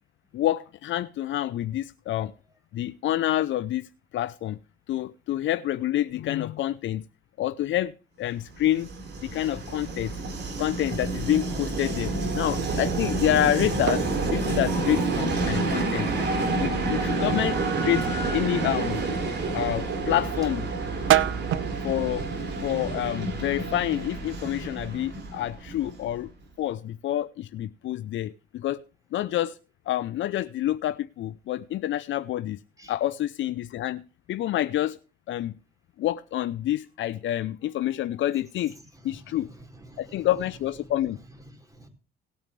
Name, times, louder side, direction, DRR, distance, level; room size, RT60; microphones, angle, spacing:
voice 1, 0.3-2.3 2.7-4.6 4.9-7.0 7.4-7.9 8.2-8.9 9.2-10.1 10.6-16.1 16.6-19.0 19.5-20.7 21.8-22.3 22.6-26.3 26.6-28.8 29.1-29.6 29.9-32.6 32.9-34.0 34.3-35.0 35.3-35.6 36.0-38.7 39.0-39.5 40.0-41.2, left 13 dB, 75° left, 0.6 m, -28 dB
Train, 8.5-26.3, right 3 dB, 60° right, 4.4 m, -29 dB
sound 1, 12.5-23.2, right 13 dB, 85° right, 0.7 m, -33 dB
voice 2, 39.0-40.3 40.8-40.9 41.3-41.9, right 1 dB, 15° right, 4.4 m, -49 dB
18.5 x 8.8 x 3.2 m
cardioid pair, 90°, 20 cm